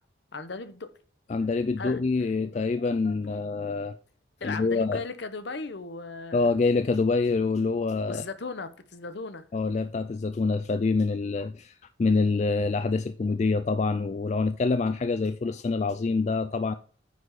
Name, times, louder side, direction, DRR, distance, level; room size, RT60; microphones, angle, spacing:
voice 1, 0.3-0.9 1.8-2.0 4.4-6.5 8.1-9.4, left 3 dB, 60° left, 0.8 m, -37 dB
voice 2, 1.3-4.0 4.4-5.0 6.3-8.2 9.5-16.7, left 4 dB, 35° left, 0.3 m, -26 dB
9.4 x 4.1 x 4.8 m
head